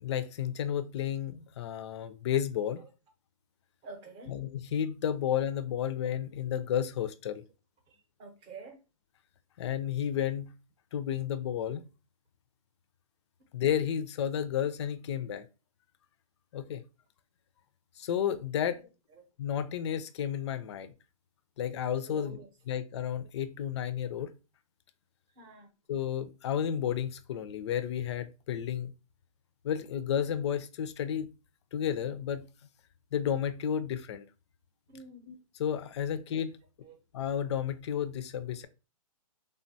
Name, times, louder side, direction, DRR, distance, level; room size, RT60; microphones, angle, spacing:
voice 1, 0.0-2.8 4.3-7.4 9.6-10.5 10.9-11.8 13.5-15.5 16.5-16.8 18.0-18.8 19.4-20.9 21.6-22.4 22.7-24.3 25.9-28.9 29.6-31.3 31.7-32.4 33.1-34.2 35.3-35.4 35.6-36.6 37.1-38.7, left 9 dB, 50° left, 0.4 m, -32 dB
voice 2, 3.8-4.3 7.9-8.8 18.6-18.8 19.1-19.2 22.1-22.5 25.4-25.7 34.9-35.3 36.8-37.0, right 3 dB, 25° right, 0.7 m, -48 dB
3.4 x 2.2 x 2.6 m
hypercardioid pair, 145°, 18 cm